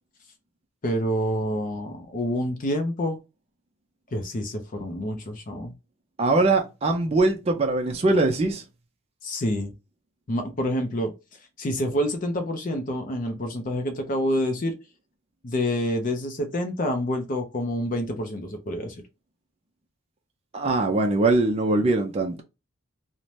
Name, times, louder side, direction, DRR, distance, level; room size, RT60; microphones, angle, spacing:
voice 1, 0.8-3.2 4.1-5.7 9.2-9.7 10.3-11.1 11.6-14.8 15.4-19.0, equal, 35° left, 0.5 m, -27 dB
voice 2, 6.2-8.6 20.5-22.4, right 2 dB, 30° right, 0.4 m, -22 dB
2.6 x 2.1 x 3.1 m
head